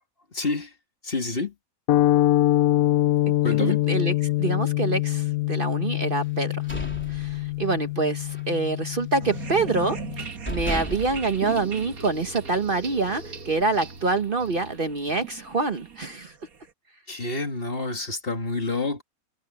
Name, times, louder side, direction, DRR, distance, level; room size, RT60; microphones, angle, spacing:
voice 1, 0.3-0.7 1.0-1.5 3.4-3.8 17.1-19.0, left 3 dB, 40° left, 2.3 m, -28 dB
sound 1, 1.9-10.3, left 15 dB, 80° left, 1.1 m, -24 dB
voice 2, 3.5-6.6 7.1-16.3, right 3 dB, 40° right, 1.2 m, -26 dB
sound 2, 6.3-7.9 8.2-8.5 8.9-9.6 10.1-10.2 10.4-12.3, equal, 10° left, 3.7 m, -35 dB
sound 3, 9.2-16.7, right 5 dB, 90° right, 2.1 m, -39 dB
omnidirectional pair, 1.5 m